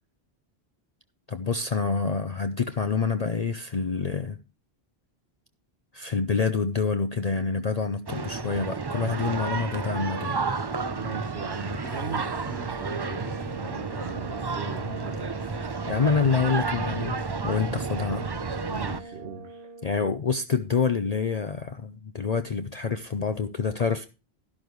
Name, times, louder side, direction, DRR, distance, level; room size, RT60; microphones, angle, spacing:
voice 1, 1.3-4.4 5.9-10.4 15.9-17.2 17.4-18.3 19.8-24.1, left 5 dB, 45° left, 0.7 m, -27 dB
sound 1, 8.1-19.0, right 4 dB, 30° right, 0.5 m, -31 dB
voice 2, 10.9-15.3 18.7-19.7, right 4 dB, 85° right, 1.7 m, -38 dB
sound 2, 11.8-19.8, right 2 dB, 55° right, 1.9 m, -44 dB
12.5 x 11.5 x 3.1 m
omnidirectional pair, 1.1 m